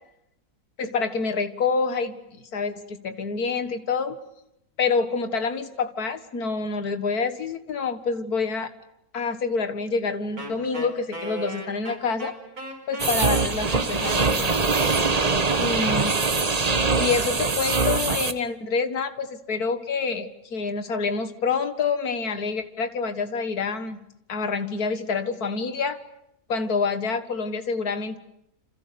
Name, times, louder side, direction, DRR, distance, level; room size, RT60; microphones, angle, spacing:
voice 1, 0.8-4.2 4.8-8.7 9.1-12.3 12.9-14.6 15.6-16.2 17.0-24.0 24.3-26.0 26.5-28.2, left 4 dB, 75° left, 9 dB, 2.2 m, -27 dB
Wind instrument woodwind instrument, 10.4-16.4, right 1 dB, 70° right, 5.5 m, -37 dB
sound 1, 13.0-18.3, right 4 dB, 25° right, 1.2 m, -23 dB
29.0 x 27.5 x 6.9 m, 0.79 s
omnidirectional pair, 1.6 m